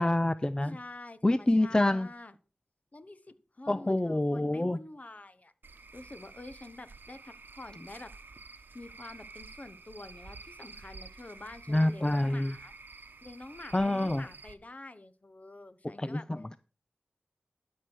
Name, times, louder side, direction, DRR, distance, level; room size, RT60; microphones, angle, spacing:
voice 1, 0.0-0.8 1.2-2.1 3.7-4.8 11.7-12.5 13.7-14.3 16.0-16.6, left 1 dB, 20° left, 14 dB, 0.4 m, -27 dB
voice 2, 0.6-2.3 2.9-5.5 5.9-8.1 8.7-12.8 13.2-16.3, left 2 dB, 40° left, 12 dB, 1.1 m, -48 dB
Cricket / Frog, 5.6-14.5, right 3 dB, 70° right, 0.9 m, -50 dB
12.0 x 4.8 x 6.1 m, 0.36 s
wide cardioid pair, 50°, 4 cm